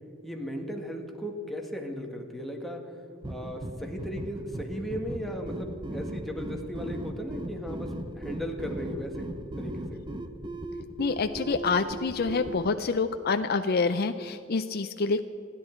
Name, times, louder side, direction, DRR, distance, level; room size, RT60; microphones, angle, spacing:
voice 1, 0.2-2.8 3.3-9.3 9.6-10.0, equal, ahead, 1 dB, 1.7 m, -36 dB
sound 1, 3.2-12.7, right 1 dB, 25° right, 0.8 m, -38 dB
voice 2, 11.0-15.2, left 4 dB, 50° left, 8 dB, 0.5 m, -27 dB
27.5 x 11.0 x 4.5 m, 2.7 s
head